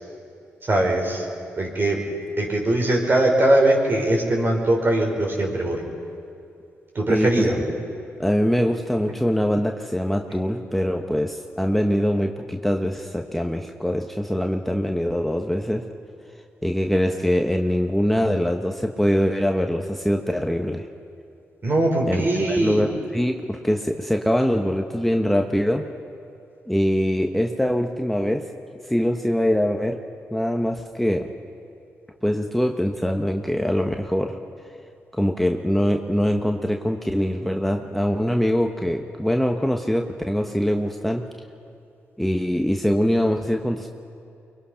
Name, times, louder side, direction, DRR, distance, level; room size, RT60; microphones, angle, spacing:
voice 1, 0.7-1.3 1.6-2.0 2.4-5.8 7.0-7.6 21.6-22.9, right 1 dB, 45° right, 0 dB, 5.4 m, -21 dB
voice 2, 7.1-7.5 8.2-15.8 16.6-20.9 22.1-25.8 26.7-28.4 28.9-30.0 30.3-31.3 32.2-34.4 35.1-41.2 42.2-43.9, equal, 5° left, 3 dB, 1.2 m, -23 dB
24.0 x 22.0 x 5.9 m, 2.6 s
supercardioid pair, 55°, 5 cm